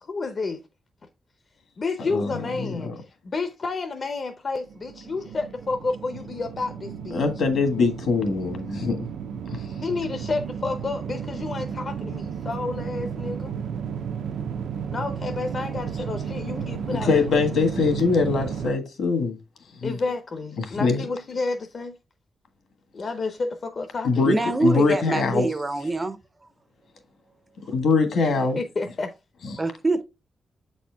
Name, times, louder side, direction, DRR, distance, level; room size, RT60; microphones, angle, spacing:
voice 1, 0.0-0.6 1.8-7.2 9.8-13.5 14.9-17.5 19.8-21.9 22.9-24.8 28.6-29.1, left 3 dB, 35° left, 0.6 m, -30 dB
voice 2, 2.6-2.9 7.1-9.0 16.9-19.4 19.8-20.0 20.6-21.0 24.0-24.4 24.6-25.5 27.7-28.6 29.5-29.6, left 4 dB, 65° left, 1.5 m, -23 dB
sound 1, 4.7-18.7, right 7 dB, 80° right, 0.5 m, -33 dB
voice 3, 24.2-26.2 29.6-30.0, right 2 dB, 20° right, 0.4 m, -24 dB
7.9 x 4.2 x 3.3 m
wide cardioid pair, 175°, 0 cm